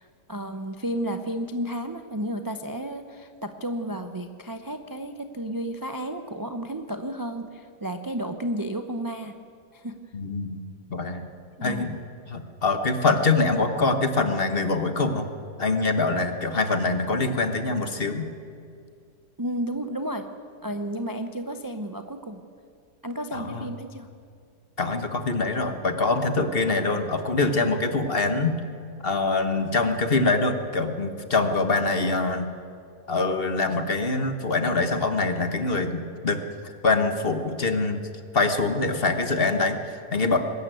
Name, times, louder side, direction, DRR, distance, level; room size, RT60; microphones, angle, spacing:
voice 1, 0.0-9.4 9.7-9.9 11.6-12.0 19.4-20.3 20.6-22.4 23.0-24.1, right 1 dB, 25° right, 7 dB, 0.5 m, -32 dB
voice 2, 10.1-10.6 10.9-11.2 11.6-12.0 12.3-15.3 15.6-18.3 23.3-23.7 24.8-28.6 29.0-32.5 33.1-38.1 38.3-40.4, left 3 dB, 35° left, 7 dB, 1.5 m, -24 dB
22.0 x 13.0 x 9.2 m, 2.4 s
omnidirectional pair, 1.8 m